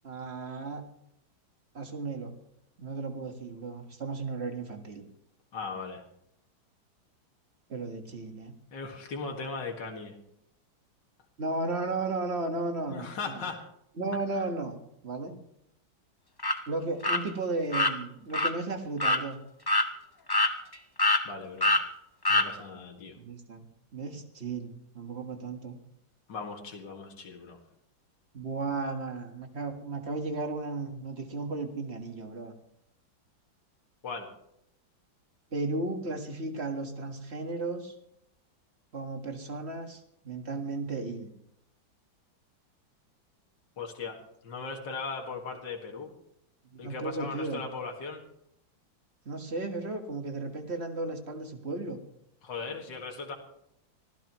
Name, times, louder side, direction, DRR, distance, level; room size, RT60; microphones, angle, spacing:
voice 1, 0.0-0.8 1.7-2.3 2.8-5.1 7.7-8.6 11.4-13.5 14.0-14.8 15.0-15.4 16.7-19.4 23.2-23.7 23.9-25.8 28.3-32.5 35.5-37.9 38.9-41.3 46.7-47.6 49.3-52.0, right 3 dB, 35° right, 5 dB, 1.7 m, -34 dB
voice 2, 5.5-6.0 8.7-10.1 12.9-13.7 21.2-21.7 22.3-23.2 26.3-27.6 34.0-34.3 43.8-44.2 44.4-46.1 46.8-48.2 52.4-53.4, left 4 dB, 65° left, 2 dB, 2.6 m, -38 dB
sound 1, 16.4-16.6 17.0-17.2 17.7-17.9 18.3-18.5 19.0-19.2 19.7-19.9 20.3-20.7 21.0-21.2 21.6-21.8 22.2-22.5, left 2 dB, 35° left, 0.3 m, -24 dB
24.5 x 15.0 x 3.1 m, 0.77 s
omnidirectional pair, 2.1 m